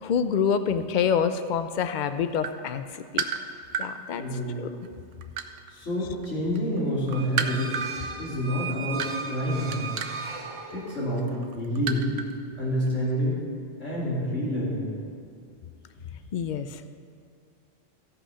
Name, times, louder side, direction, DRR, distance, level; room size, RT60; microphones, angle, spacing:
voice 1, 0.0-2.8 3.1-3.2 3.8-4.2 4.6-4.7 16.3-16.8, left 7 dB, 55° left, 10 dB, 0.5 m, -26 dB
sound 1, 2.3-3.9 4.6-6.3 6.6-12.4 12.7-12.9, right 7 dB, 80° right, 1.0 m, -32 dB
voice 2, 4.2-4.6 5.7-7.7 8.2-10.0 10.7-12.1 12.6-13.4 13.8-15.0, equal, 80° left, -7 dB, 3.6 m, -28 dB
sound 2, 7.1-11.2, right 5 dB, 40° right, 0.5 m, -36 dB
14.5 x 5.7 x 5.6 m, 2.4 s
omnidirectional pair, 1.3 m